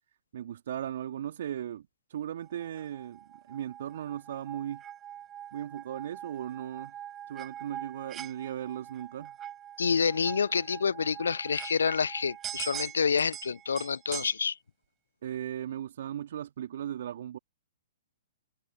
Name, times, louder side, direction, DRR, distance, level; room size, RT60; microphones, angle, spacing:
voice 1, 0.3-1.8 2.1-3.2 3.5-4.8 5.5-7.0 7.3-9.3 15.2-17.4, right 10 dB, 55° right, 3.1 m, -37 dB
sound 1, 2.6-14.4, right 10 dB, 20° right, 7.1 m, -43 dB
voice 2, 9.8-14.6, left 6 dB, 70° left, 0.4 m, -28 dB
figure-of-eight pair, 120°, 0 cm